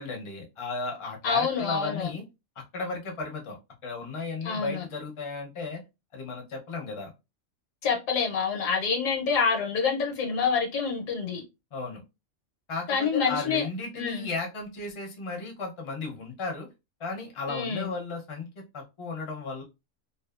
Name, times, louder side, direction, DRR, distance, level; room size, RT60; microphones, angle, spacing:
voice 1, 0.0-2.2 2.6-3.6 3.8-5.8 6.1-7.1 11.7-12.0 12.7-16.7 17.0-19.6, left 3 dB, 35° left, 0.5 m, -35 dB
voice 2, 1.2-2.1 4.4-4.8 7.8-11.4 12.9-13.6 14.0-14.3 17.5-17.9, left 5 dB, 75° left, 1.1 m, -27 dB
2.6 x 2.3 x 2.3 m
omnidirectional pair, 1.4 m